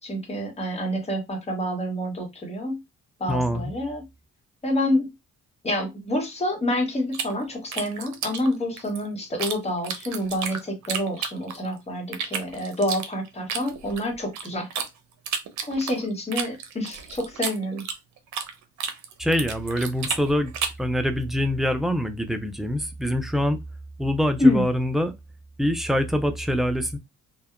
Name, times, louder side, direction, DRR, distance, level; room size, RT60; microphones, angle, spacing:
voice 1, 0.0-2.8 3.2-4.0 4.6-5.1 5.6-14.7 15.7-17.8 24.4-24.6, left 1 dB, 20° left, 1.1 m, -27 dB
voice 2, 3.3-3.7 19.2-20.5 20.8-23.6 24.0-25.2 25.6-27.0, equal, ahead, 0.3 m, -24 dB
sound 1, 7.1-9.6 9.8-11.7 12.1-14.9 15.3-18.5 18.8-20.9, right 7 dB, 70° right, 0.6 m, -31 dB
2.7 x 2.1 x 2.4 m
cardioid pair, 90°, 30 cm